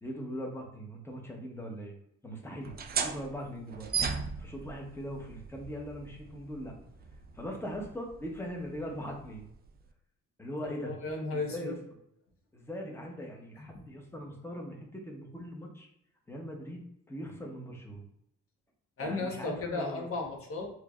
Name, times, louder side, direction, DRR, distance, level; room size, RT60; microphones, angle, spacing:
voice 1, 0.0-1.9 2.2-3.9 4.4-6.7 7.3-9.4 10.4-10.9 11.3-11.8 12.5-15.9 16.3-18.0 19.0-20.1, equal, 10° left, 0 dB, 0.9 m, -40 dB
sound 1, 2.6-9.9, right 6 dB, 30° right, 0.4 m, -38 dB
voice 2, 10.6-11.7 13.7-13.8 19.0-20.7, left 3 dB, 45° left, 0 dB, 1.2 m, -35 dB
4.4 x 2.7 x 2.4 m, 0.74 s
cardioid pair, 90°, 30 cm